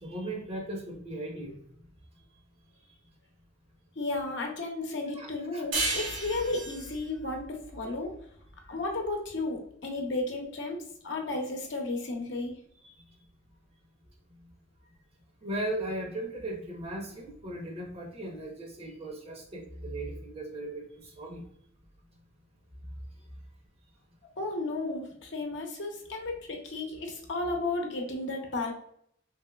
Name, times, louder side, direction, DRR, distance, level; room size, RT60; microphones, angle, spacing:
voice 1, 0.0-1.6 5.1-5.6 15.4-21.4, right 1 dB, 30° right, 1 dB, 0.7 m, -37 dB
voice 2, 4.0-8.1 8.6-10.8 11.0-12.5 24.4-28.7, left 2 dB, 65° left, 2 dB, 0.8 m, -33 dB
sound 1, 5.7-8.9, right 2 dB, 75° right, 0.9 m, -34 dB
3.4 x 3.0 x 2.2 m, 0.68 s
head